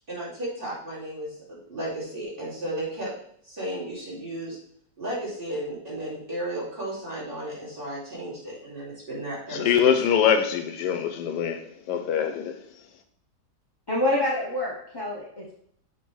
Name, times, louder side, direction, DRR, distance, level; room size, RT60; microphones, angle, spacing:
voice 1, 0.1-3.1 3.4-4.6 5.0-9.9, right 1 dB, 30° right, 2.9 m, -34 dB
voice 2, 9.5-12.6, left 8 dB, 80° left, 1.3 m, -23 dB
voice 3, 13.9-15.5, left 1 dB, 20° left, 0.6 m, -27 dB
7.3 x 3.4 x 4.6 m
omnidirectional pair, 1.8 m